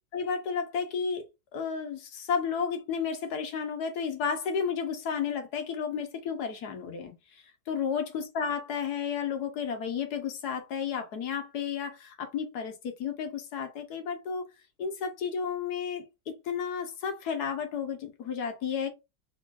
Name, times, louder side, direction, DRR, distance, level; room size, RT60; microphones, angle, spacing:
voice 1, 0.1-1.2 1.5-14.5 14.8-18.9, left 6 dB, 65° left, 1.4 m, -32 dB
3.9 x 3.1 x 2.5 m
omnidirectional pair, 1.9 m